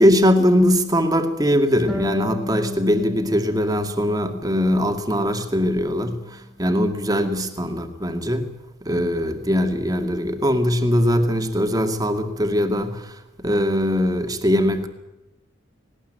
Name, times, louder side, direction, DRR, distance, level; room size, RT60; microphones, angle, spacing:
voice 1, 0.0-8.5 8.8-14.9, equal, 20° right, 2.2 m, -21 dB
Harp, 1.9-5.3 5.6-6.7, left 1 dB, ahead, 2.0 m, -35 dB
19.5 x 19.0 x 9.0 m
head